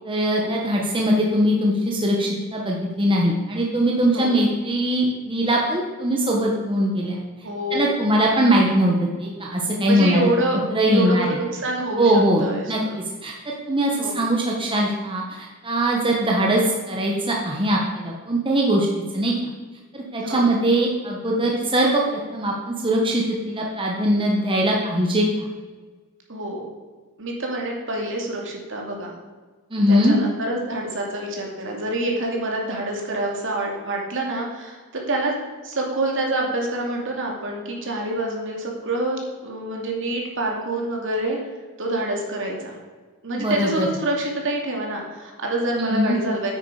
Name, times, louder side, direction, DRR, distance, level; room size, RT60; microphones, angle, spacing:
voice 1, 0.0-7.2 7.7-10.3 10.7-11.4 12.0-12.8 13.2-18.9 19.1-19.3 19.9-25.5 29.7-30.1 43.3-43.9 45.8-46.2, right 1 dB, 25° right, -2 dB, 1.3 m, -21 dB
voice 2, 7.4-7.9 9.9-10.6 10.9-13.0 13.9-14.2 20.2-20.4 26.3-26.6 27.2-29.1 29.9-34.8 35.1-35.3 35.6-41.4 41.8-42.7 43.2-46.5, right 1 dB, 60° right, 0 dB, 2.5 m, -27 dB
9.7 x 8.9 x 4.9 m, 1.4 s
head